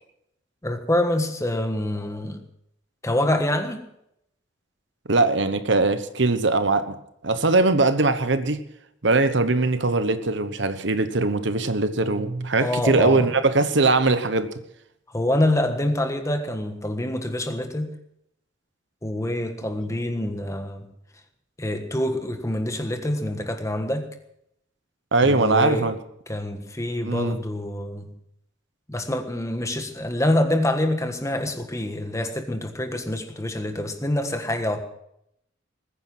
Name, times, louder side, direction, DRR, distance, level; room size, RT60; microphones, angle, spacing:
voice 1, 0.6-2.4 3.0-3.8 12.6-13.3 15.1-17.9 19.0-20.9 21.6-24.1 25.2-25.9 26.3-28.1 28.9-34.8, left 1 dB, 15° left, 1.4 m, -26 dB
voice 2, 5.1-7.0 7.2-8.6 9.0-14.5 25.1-26.0 27.0-27.4, right 3 dB, 65° right, 1.1 m, -21 dB
20.5 x 9.9 x 6.1 m
head